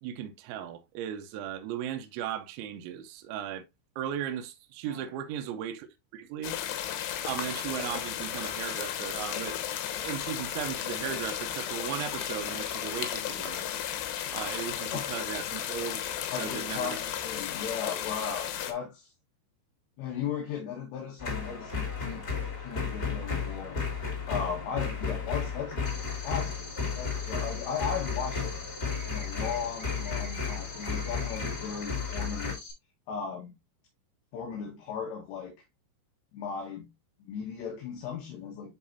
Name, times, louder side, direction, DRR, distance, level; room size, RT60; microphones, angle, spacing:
voice 1, 0.0-3.6 4.0-5.9 6.1-6.5 7.2-9.6 10.0-13.6 14.3-17.0, right 10 dB, 80° right, 2.9 m, -37 dB
sound 1, 6.4-18.7, left 10 dB, 90° left, 3.4 m, -34 dB
voice 2, 16.3-19.1 20.0-22.2 22.6-23.9 24.3-25.8 26.1-28.5 29.1-32.6 33.1-33.5 34.3-35.5 36.3-36.9 37.2-38.7, left 7 dB, 70° left, 3.3 m, -36 dB
sound 2, 21.2-32.5, left 5 dB, 25° left, 2.9 m, -33 dB
sound 3, 25.9-32.7, left 3 dB, 50° left, 4.8 m, -45 dB
11.0 x 4.1 x 2.6 m
omnidirectional pair, 5.6 m